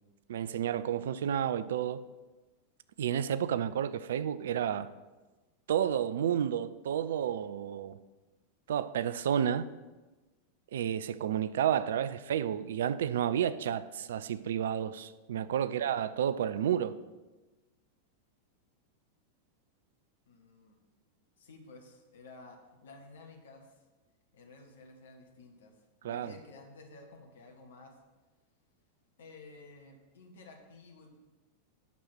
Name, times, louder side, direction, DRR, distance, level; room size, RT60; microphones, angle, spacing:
voice 1, 0.3-2.0 3.0-4.9 5.7-8.0 8.7-9.7 10.7-17.0 26.0-26.3, right 9 dB, 60° right, 0.4 m, -31 dB
voice 2, 20.3-20.8 21.4-23.8 24.3-25.8 26.0-27.9 29.2-31.2, left 3 dB, 60° left, 1.5 m, -53 dB
9.1 x 6.4 x 6.0 m
figure-of-eight pair, 90°, 0 cm